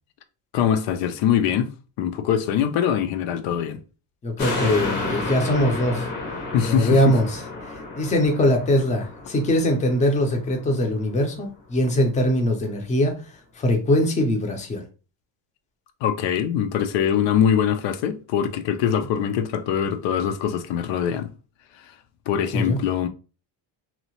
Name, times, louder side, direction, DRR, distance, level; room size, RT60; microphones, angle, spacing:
voice 1, 0.5-1.7 2.0-3.8 6.5-7.0 16.0-21.3 21.8-21.9 22.3-23.1, left 9 dB, 70° left, 0.5 m, -23 dB
voice 2, 4.2-6.1 6.6-7.4 7.7-13.2 13.6-14.9 22.5-22.8, left 1 dB, 15° left, 0.5 m, -22 dB
sound 1, 4.4-11.0 11.5-11.6, left 2 dB, 90° left, 1.2 m, -31 dB
2.8 x 2.0 x 2.9 m
cardioid pair, 140°, 46 cm